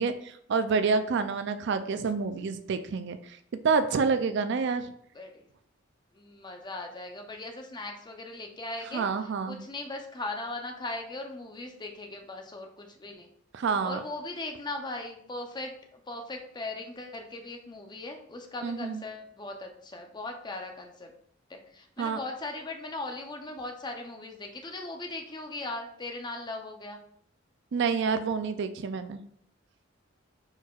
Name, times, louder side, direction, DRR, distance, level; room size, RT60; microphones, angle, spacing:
voice 1, 0.0-3.4 3.6-4.9 8.9-9.6 13.5-14.0 18.6-19.0 22.0-22.2 27.7-29.2, right 5 dB, 65° right, 10 dB, 0.4 m, -28 dB
voice 2, 5.1-5.4 6.1-9.1 9.5-13.3 13.8-21.1 21.5-27.0, left 2 dB, 25° left, 3 dB, 0.6 m, -39 dB
4.5 x 4.5 x 2.4 m, 0.65 s
head